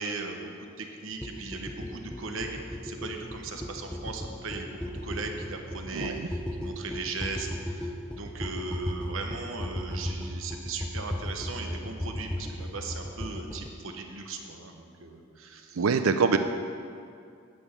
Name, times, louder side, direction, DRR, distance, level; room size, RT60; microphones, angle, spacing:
voice 1, 0.0-2.6 2.8-15.9, right 3 dB, 70° right, 3 dB, 1.2 m, -38 dB
sound 1, 1.2-13.7, equal, 5° left, 0.5 m, -36 dB
voice 2, 5.9-6.3 15.8-16.4, right 5 dB, 85° right, 8 dB, 0.5 m, -24 dB
9.2 x 6.3 x 8.4 m, 2.4 s
head